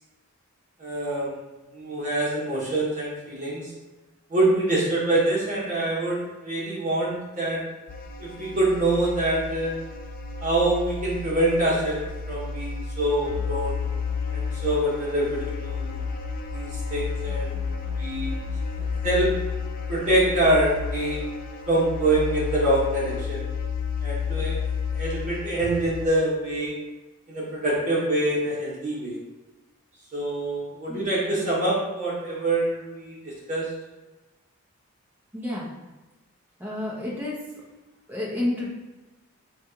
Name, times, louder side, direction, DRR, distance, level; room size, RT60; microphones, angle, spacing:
voice 1, 0.8-1.4 1.7-3.7 4.3-7.6 8.2-9.7 10.4-13.8 14.3-15.9 16.5-18.3 19.0-19.3 19.9-21.2 21.7-23.5 24.0-24.5 24.9-26.7 27.3-29.2 30.1-33.6, right 1 dB, 35° right, -6 dB, 1.4 m, -25 dB
sound 1, 7.9-26.1, left 5 dB, 40° left, 0.4 m, -31 dB
voice 2, 35.3-35.7 36.6-37.4 38.1-38.7, left 1 dB, 10° right, -5 dB, 0.9 m, -29 dB
4.3 x 2.5 x 4.5 m, 1.1 s
head